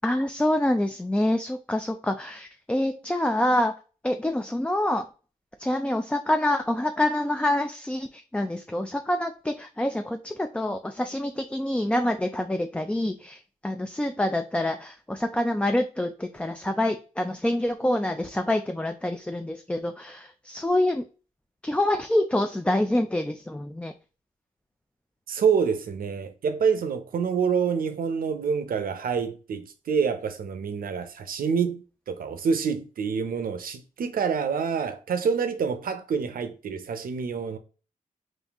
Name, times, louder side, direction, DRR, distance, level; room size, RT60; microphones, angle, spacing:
voice 1, 0.0-3.7 4.0-5.0 5.6-21.0 21.6-23.9, left 1 dB, 10° left, 0.3 m, -26 dB
voice 2, 25.3-37.6, right 6 dB, 80° right, 0.6 m, -27 dB
3.9 x 2.6 x 3.4 m
cardioid pair, 85°, 15 cm